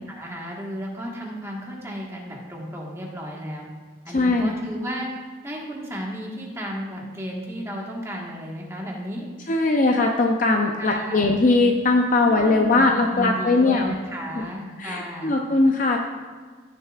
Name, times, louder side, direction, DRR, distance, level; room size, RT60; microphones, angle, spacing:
voice 1, 0.1-3.7 4.0-5.1 5.4-9.3 10.8-11.4 12.3-15.4, equal, 15° right, -2 dB, 1.4 m, -33 dB
voice 2, 4.1-4.6 9.5-13.9 14.4-14.5 14.8-16.0, left 2 dB, 40° left, 2 dB, 0.6 m, -20 dB
16.0 x 6.8 x 2.4 m, 1.5 s
head